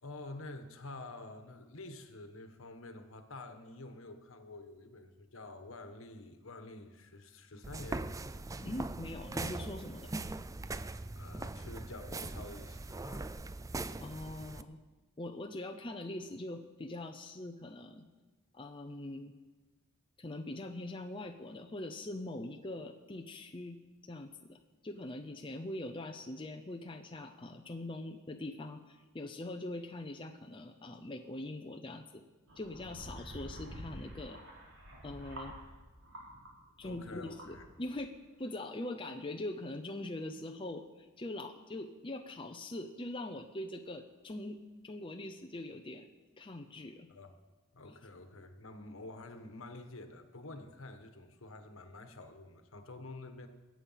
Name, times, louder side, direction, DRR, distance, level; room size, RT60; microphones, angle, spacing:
voice 1, 0.0-8.1 11.1-13.4 36.8-37.6 47.1-47.4 47.7-53.5, left 2 dB, 65° left, 7 dB, 1.4 m, -48 dB
sound 1, 7.6-14.6, right 2 dB, 15° right, 0.4 m, -41 dB
voice 2, 8.6-10.1 14.0-14.8 15.2-18.0 18.5-19.3 20.2-23.8 24.0-32.2 32.6-34.4 35.0-35.5 36.8-38.1 38.4-44.6 44.8-46.1 46.4-47.1 47.9-48.0, left 1 dB, 25° left, 4 dB, 0.7 m, -42 dB
sound 2, 32.5-36.5 36.8-38.0, right 1 dB, 65° right, 3.9 m, -49 dB
22.0 x 8.5 x 5.7 m, 1.2 s
head